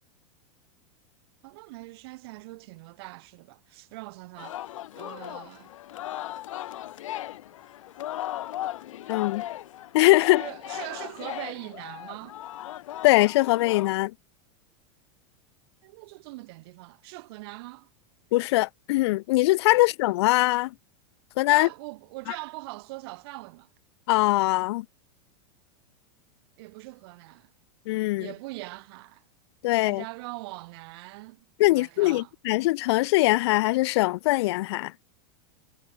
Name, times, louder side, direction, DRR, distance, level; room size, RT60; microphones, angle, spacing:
voice 1, 1.4-4.6 4.9-5.7 10.2-12.4 15.8-17.9 19.7-19.8 21.5-23.7 26.6-27.5 28.2-29.2 29.7-32.3, right 23 dB, 50° right, 3.6 m, -42 dB
Singing, 4.4-14.0, left 13 dB, 85° left, 3.5 m, -37 dB
voice 2, 9.1-9.4 9.9-10.4 13.0-14.1 18.3-20.7 21.4-21.7 24.1-24.9 27.9-28.3 29.6-30.0 31.6-34.9, left 19 dB, 55° left, 2.0 m, -22 dB
supercardioid pair, 170°, 16 cm